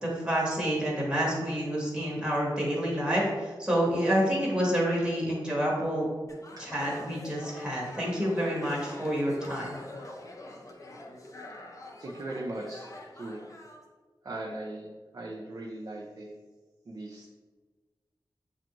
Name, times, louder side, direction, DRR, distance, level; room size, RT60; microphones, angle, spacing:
voice 1, 0.0-6.1 6.6-9.8, equal, 10° right, -5 dB, 1.3 m, -28 dB
sound 1, 6.3-13.8, left 2 dB, 40° left, 0.6 m, -45 dB
voice 2, 12.0-12.9 13.1-13.4 14.2-16.4 16.9-17.3, right 2 dB, 45° right, -2 dB, 0.5 m, -39 dB
7.1 x 2.6 x 2.9 m, 1.4 s
wide cardioid pair, 110°, 8 cm